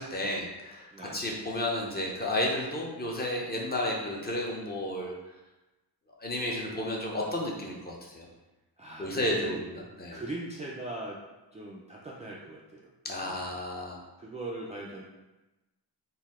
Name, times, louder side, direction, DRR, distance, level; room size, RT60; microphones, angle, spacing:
voice 1, 0.0-5.1 6.2-8.3 9.0-10.2 13.0-14.0, left 1 dB, 25° left, -2 dB, 0.6 m, -32 dB
voice 2, 0.9-1.2 8.8-9.6 10.1-11.2 11.5-12.9 13.2-13.4 14.2-15.0, right 2 dB, 20° right, -5 dB, 0.3 m, -40 dB
4.0 x 2.7 x 4.2 m, 1.1 s
wide cardioid pair, 175°, 41 cm